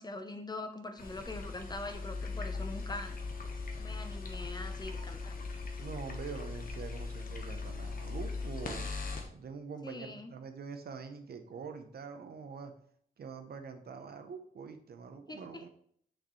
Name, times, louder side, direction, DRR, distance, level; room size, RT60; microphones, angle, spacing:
voice 1, 0.0-3.1 3.8-5.5 9.8-10.3 15.3-15.6, left 2 dB, 25° left, 7 dB, 0.9 m, -43 dB
sound 1, 1.0-9.3, left 4 dB, 60° left, 1.1 m, -39 dB
voice 2, 5.8-8.9 9.3-12.7 13.2-15.7, right 5 dB, 75° right, 7 dB, 0.9 m, -44 dB
6.5 x 6.3 x 3.2 m, 0.63 s
cardioid pair, 85°, 16 cm